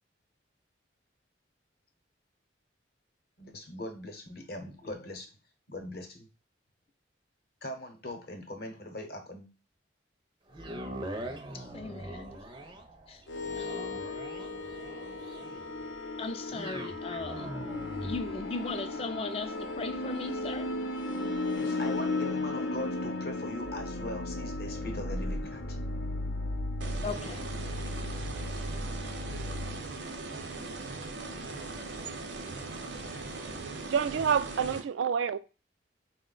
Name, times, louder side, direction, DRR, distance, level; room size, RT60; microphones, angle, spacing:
voice 1, 3.4-5.3 5.7-6.3 7.6-9.5 21.6-25.8, left 1 dB, 55° left, 0.8 m, -40 dB
sound 1, 10.5-24.7 25.2-25.3, right 1 dB, 25° right, 0.5 m, -44 dB
voice 2, 11.5-12.4 13.1-13.2 13.6-13.7 16.2-17.5 18.0-20.7 27.0-27.4, left 3 dB, 30° left, 0.3 m, -38 dB
sound 2, 13.3-29.8, left 2 dB, 85° left, 0.6 m, -35 dB
sound 3, 26.8-34.8, right 3 dB, 70° right, 0.7 m, -39 dB
voice 3, 33.9-35.4, right 7 dB, 85° right, 0.3 m, -28 dB
4.3 x 2.1 x 3.8 m
head